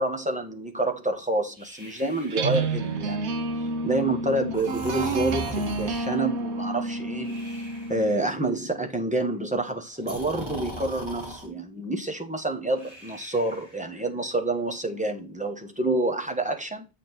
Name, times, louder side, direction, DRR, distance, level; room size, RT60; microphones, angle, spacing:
voice 1, 0.0-7.4 7.9-16.9, right 2 dB, 5° right, 1.3 m, -28 dB
Breathing, 1.6-3.1 4.5-6.2 7.2-8.2 10.0-11.5 12.8-14.0, equal, 25° right, 2.9 m, -39 dB
sound 1, 2.3-8.2, right 3 dB, 85° right, 1.2 m, -30 dB
8.3 x 4.7 x 4.0 m
omnidirectional pair, 1.1 m